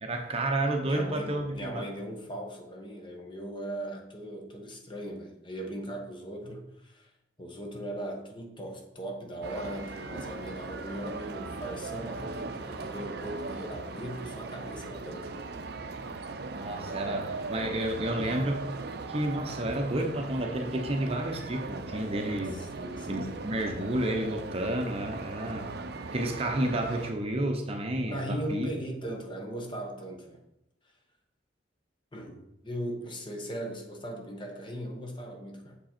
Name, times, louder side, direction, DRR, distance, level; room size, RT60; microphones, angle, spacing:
voice 1, 0.0-1.9 16.5-18.6 19.1-22.6 23.1-25.7 26.1-28.7, right 1 dB, 35° right, 3 dB, 0.8 m, -31 dB
voice 2, 0.8-7.1 7.4-15.4 22.5-23.3 28.0-30.4 32.1-35.8, right 1 dB, 25° left, 2 dB, 1.1 m, -38 dB
sound 1, 9.4-27.1, right 3 dB, 60° right, 0.5 m, -39 dB
7.0 x 5.2 x 4.3 m, 0.86 s
head